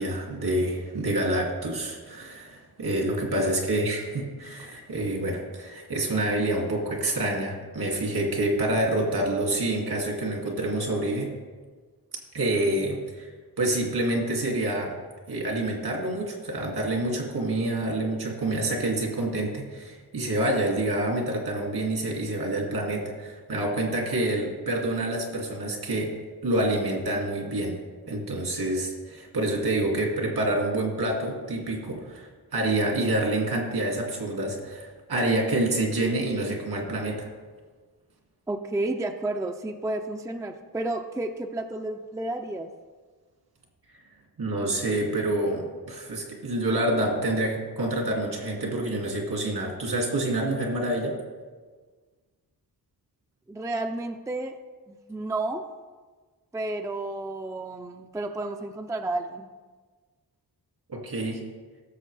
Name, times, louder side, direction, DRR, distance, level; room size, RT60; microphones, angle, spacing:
voice 1, 0.0-11.3 12.3-13.3 13.6-15.0 15.3-26.1 26.4-27.7 28.1-37.3 44.4-51.2 60.9-61.4, right 1 dB, 75° right, 0 dB, 2.3 m, -27 dB
voice 2, 38.5-42.7 53.5-54.6 54.9-55.6 56.5-59.5, right 2 dB, 10° right, 6 dB, 0.4 m, -31 dB
16.5 x 6.9 x 3.3 m, 1.4 s
wide cardioid pair, 140°, 38 cm